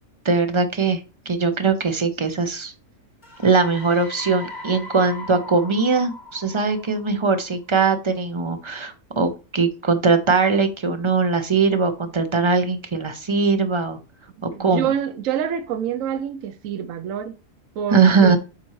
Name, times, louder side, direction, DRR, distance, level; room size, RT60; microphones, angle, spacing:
voice 1, 0.2-1.0 1.3-2.7 3.4-14.0 14.4-14.9 17.9-18.4, right 4 dB, 30° right, 0.6 m, -20 dB
sound 1, 3.2-7.8, left 2 dB, 35° left, 1.2 m, -39 dB
voice 2, 14.5-17.3 17.8-18.4, right 8 dB, 75° right, 1.0 m, -27 dB
8.6 x 4.3 x 3.1 m
omnidirectional pair, 1.5 m